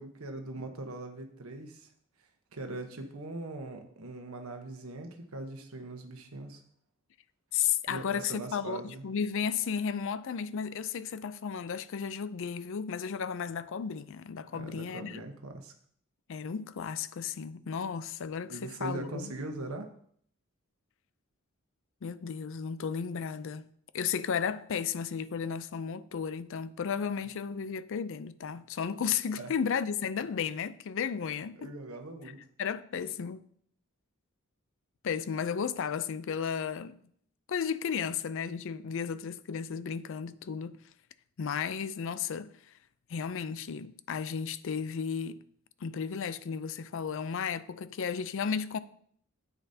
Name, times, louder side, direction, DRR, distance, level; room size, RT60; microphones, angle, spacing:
voice 1, 0.0-1.9 2.5-6.6 7.9-9.0 14.5-15.7 18.5-19.9 29.4-29.5 31.5-32.4, right 2 dB, 75° right, 1.2 m, -41 dB
voice 2, 7.5-15.2 16.3-19.3 22.0-23.7 23.9-31.7 32.6-33.4 35.0-37.0 37.5-40.8 41.4-42.5 43.1-45.4 45.8-48.8, left 7 dB, 60° left, 0.4 m, -34 dB
9.8 x 8.1 x 2.8 m
head